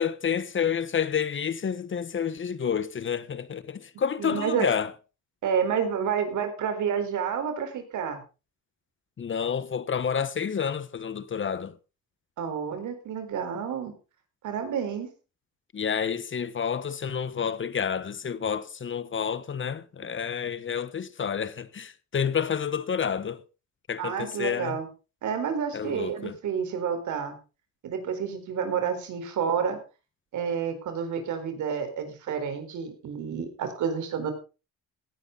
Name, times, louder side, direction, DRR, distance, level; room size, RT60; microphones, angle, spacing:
voice 1, 0.0-4.9 9.2-11.7 15.7-23.4 23.9-24.8 25.7-26.4, left 7 dB, 40° left, 1.2 m, -29 dB
voice 2, 4.2-4.7 5.4-8.2 12.4-14.0 14.4-15.1 24.0-24.9 25.2-27.4 27.8-29.8 30.3-34.3, right 7 dB, 75° right, 4.3 m, -29 dB
16.5 x 11.5 x 4.0 m
cardioid pair, 90°, 30 cm